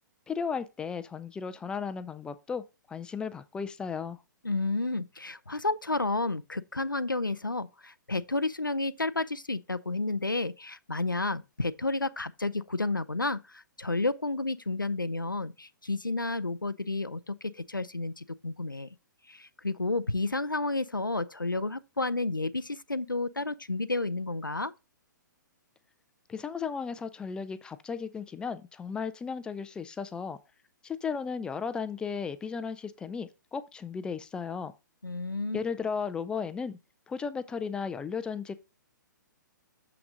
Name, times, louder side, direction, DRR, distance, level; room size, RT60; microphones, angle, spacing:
voice 1, 0.3-4.2 26.3-30.4 30.8-34.7 35.5-36.8 37.1-38.6, left 6 dB, 10° left, 0.3 m, -35 dB
voice 2, 4.4-18.9 19.3-24.7 35.0-35.6, left 2 dB, 90° left, 0.5 m, -31 dB
7.0 x 5.9 x 3.7 m
figure-of-eight pair, 120°, 11 cm